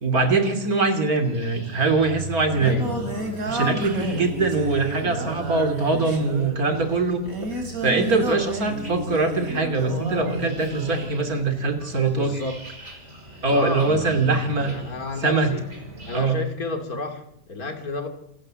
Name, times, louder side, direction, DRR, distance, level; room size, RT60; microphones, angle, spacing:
voice 1, 0.0-2.8 3.5-12.3 13.4-14.7 15.2-15.5 16.1-16.4, right 3 dB, 90° right, 6 dB, 3.2 m, -23 dB
sound 1, 1.2-16.2, right 1 dB, 50° right, 5.1 m, -40 dB
Singing, 2.3-11.1, right 2 dB, 70° right, 4.0 m, -31 dB
voice 2, 12.0-12.6 13.5-15.7 16.0-18.1, left 3 dB, 85° left, 6 dB, 3.2 m, -32 dB
26.5 x 13.0 x 7.6 m, 0.77 s
omnidirectional pair, 1.5 m